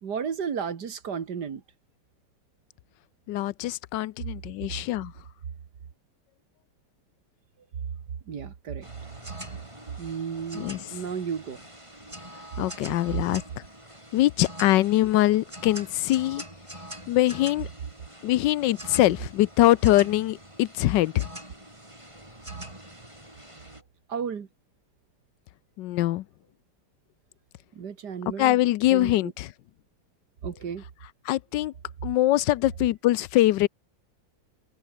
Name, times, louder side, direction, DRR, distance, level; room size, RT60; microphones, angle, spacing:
voice 1, 0.0-1.6 8.3-8.9 10.0-11.7 24.1-24.5 27.7-28.6 28.9-29.3 30.4-30.8, right 7 dB, 70° right, 2.2 m, -33 dB
voice 2, 3.3-5.1 10.5-10.8 12.6-13.6 14.1-16.4 17.1-17.7 18.2-21.3 25.8-26.2 28.4-29.5 31.3-31.7 32.0-33.7, left 15 dB, 90° left, 1.3 m, -23 dB
sound 1, 8.8-23.8, right 1 dB, 15° right, 6.7 m, -44 dB
omnidirectional pair, 1.9 m